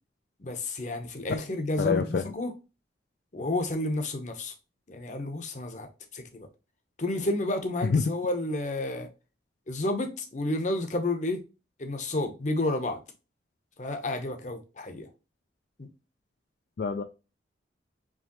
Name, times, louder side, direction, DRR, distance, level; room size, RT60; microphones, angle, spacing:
voice 1, 0.4-2.5 3.3-4.5 4.9-6.5 7.0-9.1 9.7-11.4 11.8-13.0 13.8-15.1 15.8-15.9, left 2 dB, 45° left, 0.8 m, -31 dB
voice 2, 1.8-2.2 7.8-8.0 16.8-17.0, left 5 dB, 60° left, 0.4 m, -26 dB
4.8 x 3.2 x 2.9 m
head